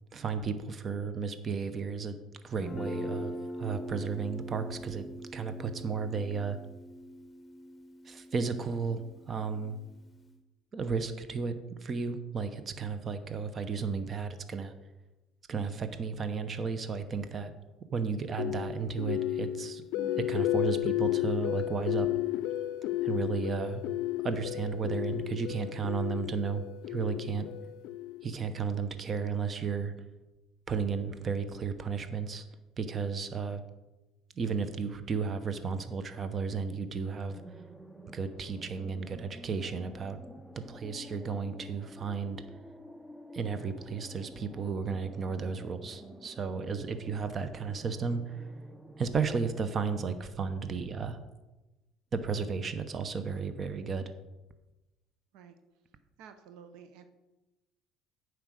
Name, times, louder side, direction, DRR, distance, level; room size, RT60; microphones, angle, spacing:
voice 1, 0.1-2.2 2.4-6.6 8.0-9.8 10.7-14.7 15.5-17.5 17.9-22.1 23.0-23.8 24.2-27.5 28.2-29.9 30.7-32.4 32.8-33.6 34.4-37.4 38.1-40.2 40.7-42.4 43.3-48.5 49.0-51.2 52.1-54.1, right 5 dB, 35° right, 10 dB, 0.8 m, -33 dB
Guitar, 2.6-10.3, equal, 20° left, 1.0 m, -42 dB
Soft-synth Interlude, 18.4-28.5, left 14 dB, 75° left, 0.4 m, -33 dB
sound 1, 37.3-49.7, equal, 5° right, 0.6 m, -50 dB
voice 2, 56.2-57.0, right 7 dB, 75° right, 8 dB, 0.7 m, -51 dB
8.9 x 4.8 x 6.3 m, 1.1 s
supercardioid pair, 100°, 0 cm